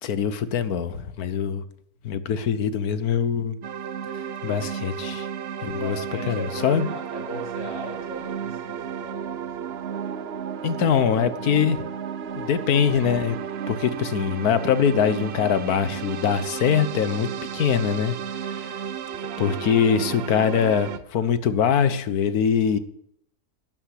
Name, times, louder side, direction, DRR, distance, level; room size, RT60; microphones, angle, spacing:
voice 1, 0.0-1.6 2.0-3.6 4.4-5.3 5.6-6.0 6.3-6.9 10.6-11.8 12.4-13.4 13.7-18.8 19.4-22.8, left 7 dB, 75° left, 1.5 m, -23 dB
sound 1, 3.6-21.0, right 8 dB, 55° right, 0.8 m, -33 dB
voice 2, 5.7-9.6, equal, 50° left, 6.0 m, -38 dB
12.0 x 8.7 x 8.3 m
omnidirectional pair, 1.6 m